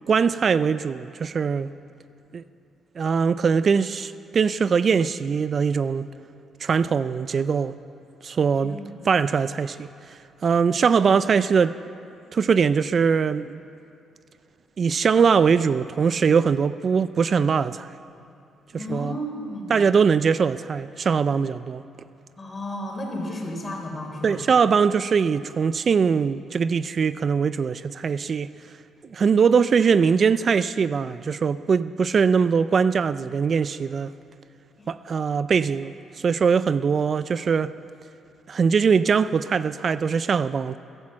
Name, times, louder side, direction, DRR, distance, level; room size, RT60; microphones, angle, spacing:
voice 1, 0.1-1.7 2.3-2.4 3.0-6.1 6.6-7.8 8.2-8.8 9.0-11.8 12.3-13.6 14.8-17.9 18.7-19.1 19.7-21.8 24.2-28.5 29.1-34.1 34.9-35.9 36.2-37.7 38.5-40.8, right 6 dB, 45° right, 14 dB, 0.3 m, -21 dB
voice 2, 8.6-9.0 18.8-19.8 22.4-24.5 34.8-34.9, left 1 dB, 30° left, 1 dB, 3.6 m, -33 dB
14.5 x 11.5 x 7.6 m, 2.7 s
cardioid pair, 90°, 0 cm